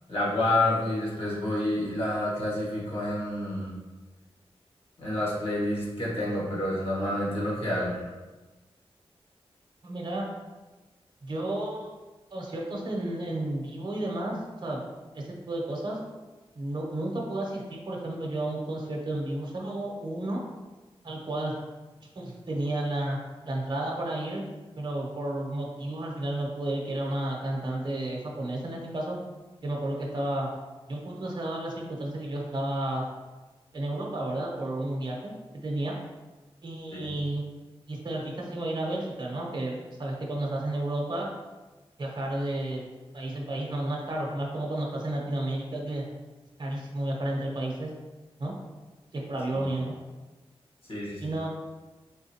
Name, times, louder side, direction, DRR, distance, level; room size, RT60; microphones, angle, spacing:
voice 1, 0.1-3.7 5.0-8.0 36.9-37.1 49.5-49.7 50.9-51.3, left 1 dB, 65° left, -6 dB, 1.4 m, -29 dB
voice 2, 9.8-10.3 11.2-11.9 12.3-14.8 15.1-16.0 16.5-20.4 21.0-21.6 22.1-23.2 23.4-24.4 24.8-29.2 29.6-30.5 30.9-33.0 33.7-36.0 36.6-37.4 37.9-41.3 42.0-42.9 43.1-46.0 46.6-47.9 48.4-48.5 49.1-49.9 51.2-51.5, right 1 dB, 45° right, -2 dB, 0.8 m, -32 dB
4.0 x 3.5 x 2.8 m, 1.2 s
wide cardioid pair, 120°, 10 cm